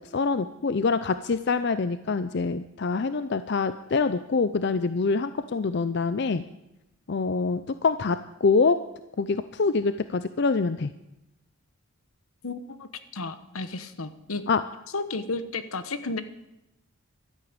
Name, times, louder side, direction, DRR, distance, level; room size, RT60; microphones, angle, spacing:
voice 1, 0.1-6.4 7.1-8.8 9.2-10.9 14.5-14.6, left 4 dB, 50° left, 12 dB, 0.5 m, -25 dB
voice 2, 12.4-14.4 14.9-16.2, left 3 dB, 80° left, 11 dB, 1.1 m, -33 dB
12.5 x 11.0 x 8.8 m, 0.91 s
head